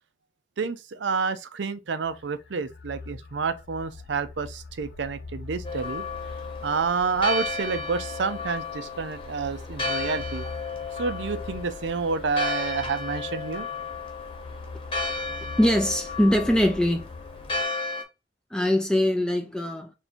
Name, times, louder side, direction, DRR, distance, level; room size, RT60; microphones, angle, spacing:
voice 1, 0.6-6.0 6.6-10.5 11.0-13.7, right 5 dB, 85° right, 0.5 m, -29 dB
sound 1, 2.0-17.6, left 3 dB, 65° left, 0.5 m, -42 dB
Church bell, 5.6-18.0, left 3 dB, 30° left, 1.0 m, -33 dB
voice 2, 15.6-17.1 18.5-19.9, left 1 dB, 5° left, 0.4 m, -22 dB
3.5 x 2.8 x 4.3 m
head